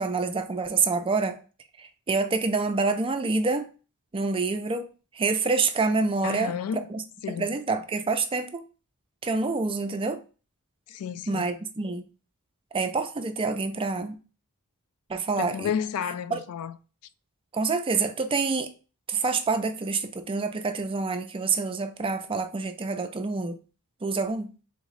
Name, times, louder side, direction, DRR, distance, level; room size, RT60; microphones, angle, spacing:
voice 1, 0.0-1.4 1.8-3.7 4.1-4.9 5.1-7.0 7.4-8.6 9.2-10.2 11.3-12.0 12.7-14.1 15.1-15.7 16.3-16.4 17.5-18.7 19.1-23.6 24.0-24.5, right 4 dB, 25° right, 0.4 m, -27 dB
voice 2, 6.2-6.9 7.2-7.5 10.9-11.5 15.4-16.8, left 8 dB, 75° left, 0.3 m, -31 dB
3.6 x 3.0 x 3.9 m
head